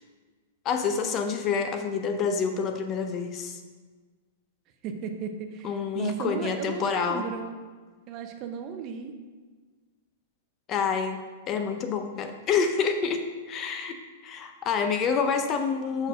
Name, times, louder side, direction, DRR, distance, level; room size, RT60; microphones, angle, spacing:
voice 1, 0.6-3.6 5.6-7.3 10.7-11.2 11.5-13.9 14.2-16.1, left 6 dB, 30° left, 6 dB, 0.6 m, -28 dB
voice 2, 4.8-7.6 8.1-9.1 16.0-16.1, right 6 dB, 40° right, 6 dB, 0.7 m, -35 dB
6.0 x 4.4 x 5.0 m, 1.4 s
hypercardioid pair, 130°, 0 cm